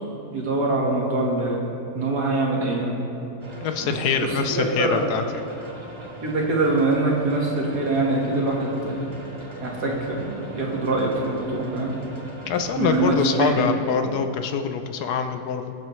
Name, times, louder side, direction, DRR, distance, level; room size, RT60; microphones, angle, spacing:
voice 1, 0.3-1.7 1.9-3.0 3.8-3.9 4.2-5.1 6.2-9.1 9.6-11.9 12.8-14.1, right 2 dB, 75° right, -2 dB, 2.3 m, -24 dB
sound 1, 3.4-13.7, right 2 dB, 20° right, 0.9 m, -40 dB
voice 2, 3.6-5.2 12.5-15.7, left 6 dB, 75° left, 7 dB, 1.2 m, -24 dB
22.0 x 7.9 x 3.2 m, 2.7 s
omnidirectional pair, 1.7 m